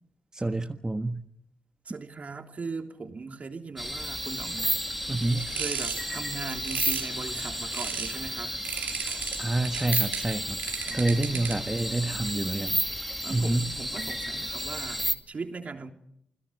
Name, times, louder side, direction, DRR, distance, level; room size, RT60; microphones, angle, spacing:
voice 1, 0.3-1.2 5.1-5.5 9.4-10.6 10.9-12.8 13.3-13.7, right 2 dB, 20° right, 6 dB, 1.4 m, -28 dB
voice 2, 1.8-4.8 5.5-8.5 10.8-11.6 13.2-15.9, right 4 dB, 50° right, 4 dB, 3.3 m, -39 dB
sound 1, 3.8-15.2, equal, ahead, 2.5 m, -32 dB
sound 2, 5.2-8.2 8.6-11.8, right 8 dB, 80° right, 3.1 m, -36 dB
29.0 x 17.0 x 6.6 m, 0.74 s
supercardioid pair, 50°, 3 cm